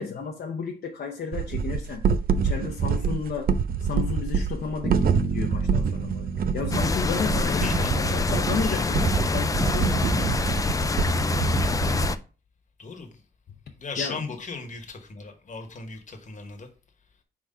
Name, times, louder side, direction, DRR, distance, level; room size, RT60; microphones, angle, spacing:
voice 1, 0.0-2.0 2.4-3.5 3.8-10.1 14.0-14.3, left 5 dB, 65° left, 0.7 m, -33 dB
sound 1, 1.3-12.1, right 6 dB, 60° right, 0.4 m, -26 dB
Bass guitar, 4.8-8.9, right 4 dB, 25° right, 1.9 m, -33 dB
sound 2, 6.7-12.2, left 3 dB, 20° left, 0.3 m, -25 dB
voice 2, 7.6-7.9 12.8-13.1 13.8-16.7, left 4 dB, 45° left, 1.2 m, -37 dB
4.7 x 3.8 x 5.4 m
wide cardioid pair, 140°, 18 cm